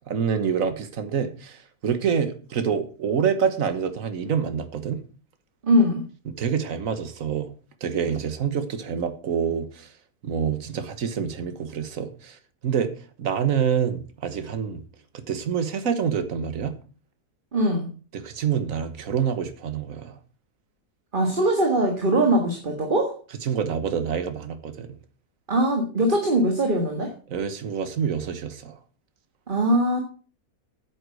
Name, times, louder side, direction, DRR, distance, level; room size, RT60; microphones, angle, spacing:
voice 1, 0.1-5.0 6.3-7.5 7.8-9.9 10.2-12.9 13.2-14.8 15.3-16.7 18.1-20.2 23.4-25.0 27.3-28.8, right 7 dB, 60° right, 1.7 m, -27 dB
voice 2, 5.6-6.0 17.5-17.9 21.1-23.2 25.5-27.1 29.5-30.0, right 1 dB, 35° right, 1.9 m, -21 dB
9.7 x 8.0 x 6.4 m
omnidirectional pair, 1.6 m